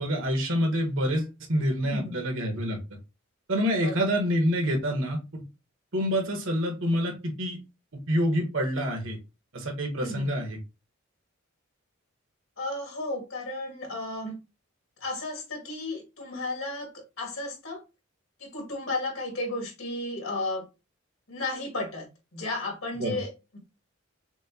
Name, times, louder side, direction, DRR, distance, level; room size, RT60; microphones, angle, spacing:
voice 1, 0.0-2.8 3.5-5.4 5.9-7.6 8.1-9.2 9.5-10.6 23.0-23.2, equal, 70° right, 1.5 m, -27 dB
voice 2, 1.8-2.3 3.8-4.0 10.0-10.3 12.6-14.4 15.0-16.9 17.2-17.8 18.4-20.7 21.3-22.1 22.3-23.6, left 2 dB, 80° left, 2.1 m, -33 dB
6.1 x 2.3 x 2.9 m
head